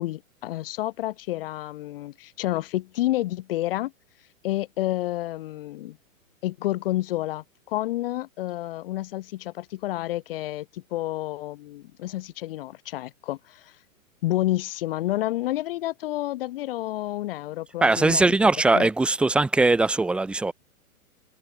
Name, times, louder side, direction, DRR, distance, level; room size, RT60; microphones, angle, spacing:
voice 1, 0.0-3.9 4.4-6.0 6.4-13.7 14.2-18.4 18.7-18.9, left 16 dB, 40° left, 3.9 m, -29 dB
voice 2, 17.8-20.5, right 3 dB, ahead, 1.0 m, -20 dB
hypercardioid pair, 165°, 42 cm